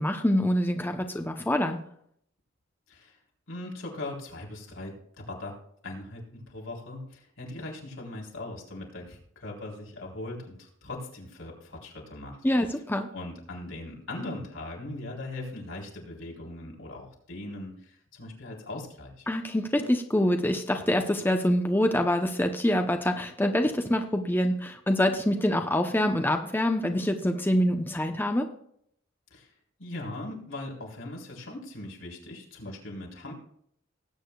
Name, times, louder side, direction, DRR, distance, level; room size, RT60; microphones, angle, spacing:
voice 1, 0.0-1.8 12.4-13.1 19.3-28.5, left 1 dB, 10° left, 5 dB, 0.8 m, -25 dB
voice 2, 3.5-5.6 5.8-12.8 13.1-19.3 29.3-29.5 29.8-33.3, left 2 dB, 80° left, -2 dB, 3.9 m, -40 dB
19.0 x 8.8 x 2.4 m, 0.67 s
head